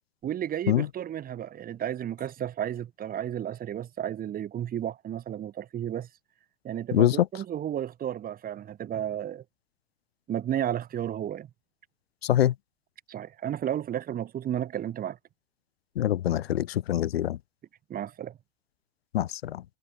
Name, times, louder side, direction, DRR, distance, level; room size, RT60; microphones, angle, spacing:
voice 1, 0.2-6.1 6.6-9.4 10.3-11.5 12.3-12.4 13.1-15.2 17.9-18.4, right 10 dB, 30° right, 2.0 m, -33 dB
voice 2, 12.2-12.5 16.0-17.4 19.1-19.6, left 12 dB, 85° left, 0.5 m, -24 dB
hypercardioid pair, 95°, 30 cm